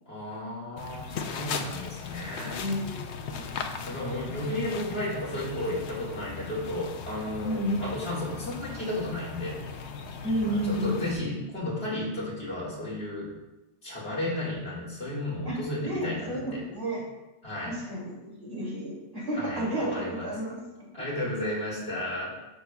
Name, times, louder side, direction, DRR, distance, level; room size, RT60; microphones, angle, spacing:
voice 1, 0.1-2.6 3.9-9.6 10.4-13.3 13.8-16.6 17.4-17.7 19.4-20.3 20.9-22.4, left 1 dB, 55° left, -6 dB, 2.3 m, -33 dB
sound 1, 0.8-11.2, left 5 dB, 70° left, 0.9 m, -38 dB
voice 2, 2.6-3.6 7.4-8.0 10.2-11.1 15.4-17.0 17.6-20.9, equal, 55° right, -6 dB, 3.0 m, -32 dB
10.5 x 7.0 x 2.3 m, 1.0 s
omnidirectional pair, 1.2 m